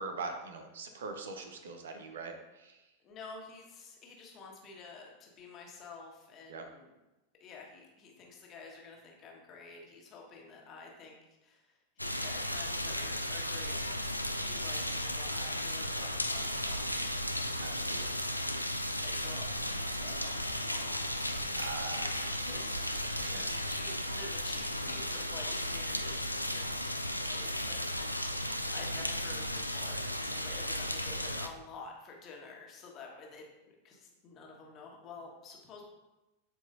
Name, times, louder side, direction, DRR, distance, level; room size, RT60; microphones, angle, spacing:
voice 1, 0.0-2.8 6.5-6.6 17.6-18.2 21.5-22.7 23.2-23.6, right 4 dB, 60° right, 6 dB, 0.8 m, -42 dB
voice 2, 3.0-6.9 7.4-11.2 11.4-17.0 18.2-18.3 19.0-21.4 22.4-22.9 23.3-26.9 27.2-28.4 28.7-35.8, left 4 dB, 30° left, 0 dB, 1.5 m, -50 dB
sound 1, 12.0-31.5, left 1 dB, 90° left, 0.4 m, -35 dB
10.0 x 4.7 x 2.6 m, 1.0 s
figure-of-eight pair, 90°, 0 cm